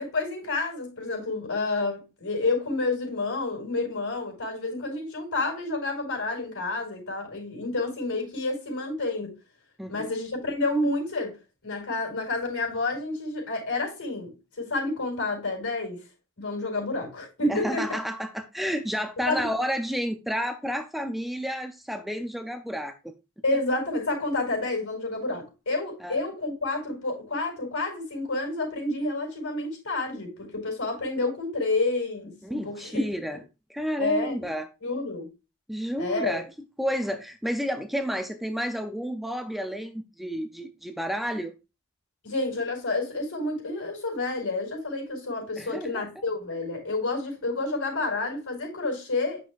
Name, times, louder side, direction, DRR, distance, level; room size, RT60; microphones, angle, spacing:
voice 1, 0.0-9.3 9.9-11.4 11.6-16.0 16.4-17.8 19.2-19.5 23.4-32.9 34.0-34.5 34.8-35.3 36.0-36.4 42.2-49.4, left 2 dB, 65° left, 4.7 m, -29 dB
voice 2, 9.8-10.1 17.5-23.1 26.0-26.2 32.4-33.4 33.7-34.7 35.7-36.5 36.8-41.5 45.6-46.1, equal, ahead, 0.4 m, -31 dB
9.1 x 6.4 x 2.4 m
head